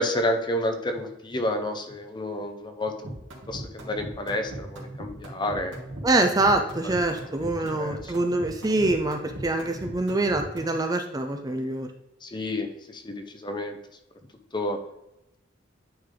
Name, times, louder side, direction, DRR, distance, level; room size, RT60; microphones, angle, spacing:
voice 1, 0.0-3.2 3.5-5.8 6.8-6.9 7.6-8.1 12.2-13.8 14.5-14.8, left 1 dB, 25° left, 6 dB, 0.7 m, -30 dB
sound 1, 3.0-10.8, right 1 dB, 80° right, 1.9 m, -39 dB
voice 2, 6.0-11.9, right 2 dB, 20° right, 5 dB, 0.5 m, -25 dB
9.5 x 3.5 x 3.7 m, 0.86 s
head